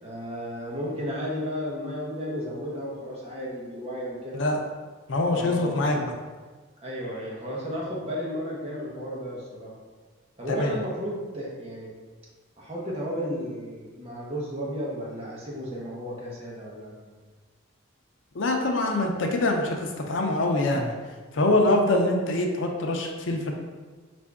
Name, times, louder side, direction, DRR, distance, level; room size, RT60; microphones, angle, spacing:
voice 1, 0.0-4.4 5.3-6.0 6.8-9.7 10.4-11.9 12.6-17.1 21.3-21.5, equal, 30° right, -4 dB, 0.9 m, -33 dB
voice 2, 5.1-6.1 10.5-10.8 18.3-20.9 21.3-23.5, left 2 dB, 65° left, 2 dB, 0.5 m, -24 dB
4.4 x 2.5 x 3.4 m, 1.4 s
head